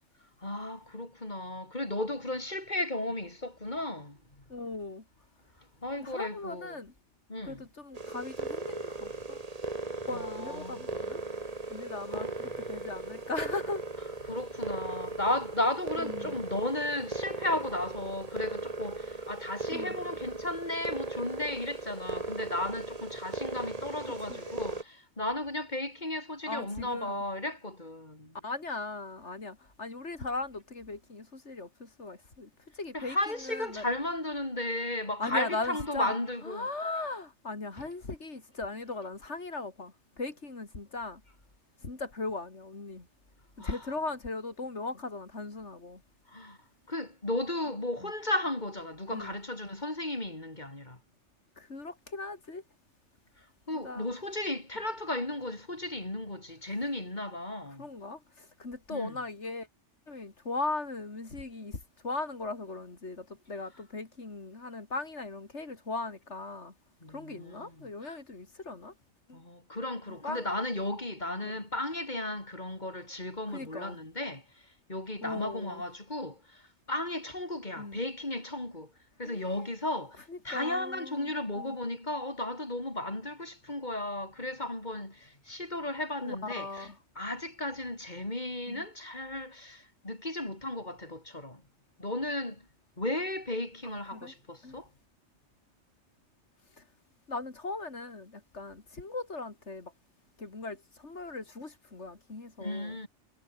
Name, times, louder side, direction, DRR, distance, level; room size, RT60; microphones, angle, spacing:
voice 1, 0.4-4.2 5.8-6.8 7.3-7.6 10.1-10.8 12.1-12.3 14.3-28.3 32.9-36.7 43.6-43.8 46.3-46.6 46.9-51.0 53.7-57.9 58.9-59.1 67.0-68.1 69.3-74.4 74.9-76.6 76.9-78.9 79.2-86.9 87.2-91.6 92.0-92.6 93.0-94.9 102.6-103.1, left 1 dB, 40° left, 4.9 m, -35 dB
voice 2, 4.5-5.0 6.0-6.9 7.4-9.4 10.1-11.2 11.7-14.0 16.0-16.4 19.7-20.0 24.1-24.6 26.4-27.2 28.4-33.9 35.2-36.2 36.4-41.2 41.8-43.1 43.6-46.0 48.0-48.1 49.1-49.4 51.6-52.6 53.7-54.1 57.8-59.7 60.1-66.7 67.1-68.9 69.3-69.4 70.1-70.5 71.4-71.5 73.5-74.0 75.2-75.8 77.8-78.0 79.2-79.6 80.3-81.8 86.2-87.0 88.7-88.9 93.8-94.3 94.6-94.8 96.8-96.9 97.3-99.9 100.4-103.0, left 3 dB, 90° left, 3.6 m, -38 dB
sound 1, 8.0-24.8, right 3 dB, 35° right, 2.0 m, -38 dB
omnidirectional pair, 1.2 m